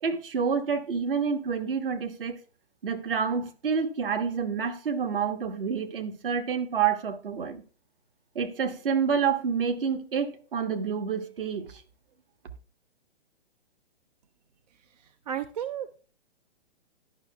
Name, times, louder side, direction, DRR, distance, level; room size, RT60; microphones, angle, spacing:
voice 1, 0.0-2.4 2.8-7.6 8.3-11.8, right 6 dB, 60° right, 1.2 m, -28 dB
voice 2, 15.3-16.0, right 9 dB, 40° right, 0.4 m, -33 dB
11.5 x 5.7 x 2.3 m
figure-of-eight pair, 120°, 31 cm